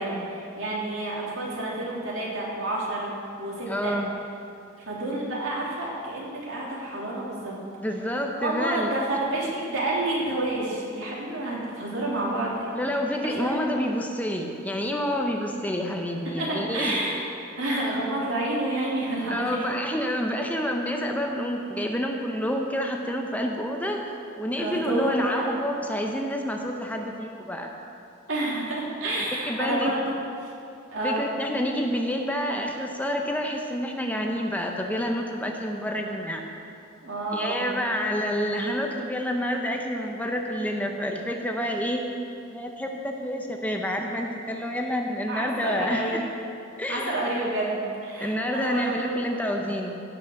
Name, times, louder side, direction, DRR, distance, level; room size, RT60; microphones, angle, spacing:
voice 1, 0.0-3.1 3.4-4.0 4.8-7.5 8.4-12.7 13.3-13.6 16.4-17.3 17.6-19.6 24.6-25.5 28.3-30.0 30.4-30.5 30.9-31.2 37.0-37.7 45.3-46.2 46.9-49.4, right 2 dB, 75° right, -5 dB, 3.1 m, -29 dB
voice 2, 3.7-4.1 7.8-8.9 12.7-17.0 19.3-27.7 29.5-29.9 31.0-36.4 37.3-42.2 42.5-46.2 46.8-47.1 48.2-50.0, equal, 10° left, 2 dB, 0.8 m, -28 dB
16.5 x 6.0 x 6.6 m, 2.6 s
head